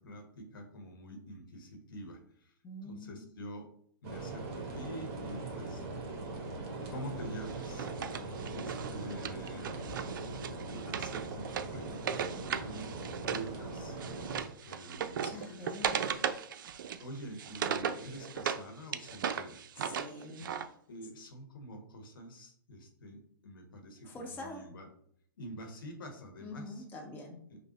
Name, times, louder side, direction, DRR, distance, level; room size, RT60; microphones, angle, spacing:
voice 1, 0.0-2.6 2.8-3.7 4.0-6.2 6.7-7.9 8.5-9.9 10.3-12.9 13.2-14.0 14.6-15.9 16.8-19.6 20.9-24.9 25.4-26.8 27.5-27.6, equal, 65° left, 4 dB, 1.0 m, -46 dB
voice 2, 2.6-3.3 15.2-16.0 19.8-20.5 24.0-24.7 26.4-27.4, left 1 dB, 15° left, 1 dB, 0.7 m, -45 dB
sound 1, 4.0-14.4, right 3 dB, 35° right, 1.3 m, -41 dB
Wood, 7.5-13.5 13.8-18.6 18.9-20.7, right 7 dB, 60° right, 0.4 m, -37 dB
5.3 x 2.1 x 2.9 m, 0.64 s
hypercardioid pair, 130°, 12 cm